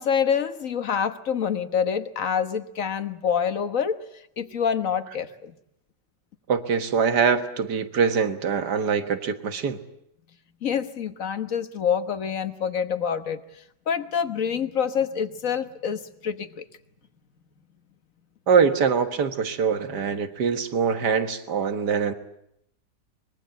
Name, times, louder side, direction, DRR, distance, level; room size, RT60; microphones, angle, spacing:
voice 1, 0.0-4.0 4.4-5.5 10.6-13.4 13.9-16.7, left 7 dB, 55° left, 10 dB, 1.5 m, -26 dB
voice 2, 6.5-9.8 18.5-22.1, right 6 dB, 80° right, 9 dB, 2.1 m, -23 dB
24.0 x 22.0 x 7.9 m, 0.76 s
omnidirectional pair, 1.8 m